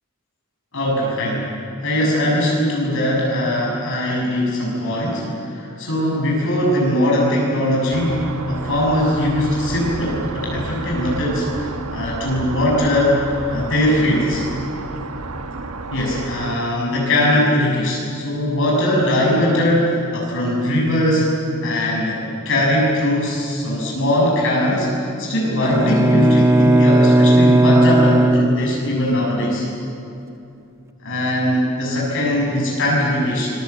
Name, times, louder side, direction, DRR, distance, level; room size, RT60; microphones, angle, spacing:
voice 1, 0.7-1.5 1.8-8.2 8.5-13.2 13.5-14.4 15.9-21.3 21.6-29.7 31.0-33.5, left 1 dB, 60° left, -3 dB, 7.1 m, -20 dB
sound 1, 7.9-16.6, right 3 dB, 80° right, 1.4 m, -31 dB
Bowed string instrument, 25.6-29.2, right 1 dB, 15° right, 0.9 m, -15 dB
26.0 x 23.0 x 8.3 m, 2.7 s
head